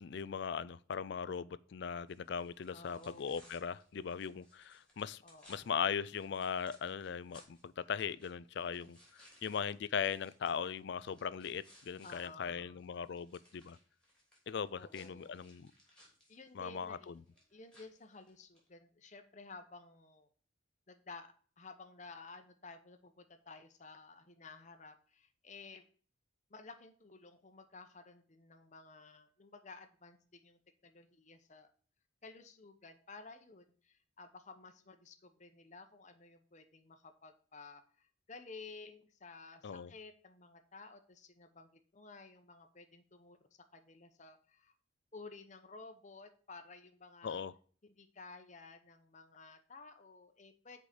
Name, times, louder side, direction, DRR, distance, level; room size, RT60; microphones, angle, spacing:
voice 1, 0.0-5.2 5.5-9.0 9.4-13.8 14.5-15.7 16.6-17.1 39.6-39.9 47.2-47.5, left 7 dB, 55° left, 0.4 m, -39 dB
sound 1, 2.1-12.3 12.6-18.7, left 1 dB, 5° left, 2.9 m, -64 dB
voice 2, 2.7-3.5 5.2-5.7 12.0-12.8 14.7-15.4 16.3-17.1 17.5-20.3 20.9-25.8 26.5-31.7 32.2-43.4 43.7-44.7 45.1-47.4 47.8-50.8, left 3 dB, 40° left, 0.9 m, -54 dB
6.2 x 5.0 x 6.7 m
head